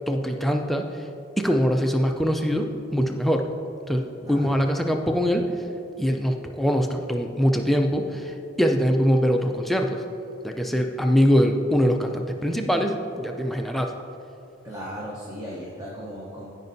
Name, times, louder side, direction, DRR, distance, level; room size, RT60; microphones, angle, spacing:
voice 1, 0.1-0.9 1.4-3.5 3.9-5.5 6.0-10.0 10.4-13.9, equal, ahead, 3 dB, 0.3 m, -23 dB
voice 2, 4.2-4.6 14.6-16.5, equal, 15° right, -5 dB, 0.8 m, -36 dB
15.0 x 5.2 x 2.7 m, 2.9 s
head